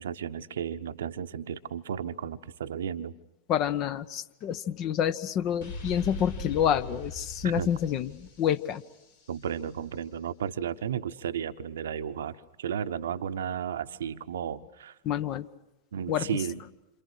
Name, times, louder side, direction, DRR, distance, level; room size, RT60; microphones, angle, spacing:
voice 1, 0.0-3.1 7.4-7.7 9.3-14.9 15.9-16.6, right 8 dB, 65° right, 11 dB, 1.0 m, -34 dB
voice 2, 3.5-8.8 15.0-15.5 16.1-16.3, left 9 dB, 35° left, 13 dB, 1.0 m, -28 dB
sound 1, 5.6-9.4, left 2 dB, 65° left, 7.3 m, -40 dB
28.5 x 27.0 x 6.4 m, 0.96 s
figure-of-eight pair, 90°, 0 cm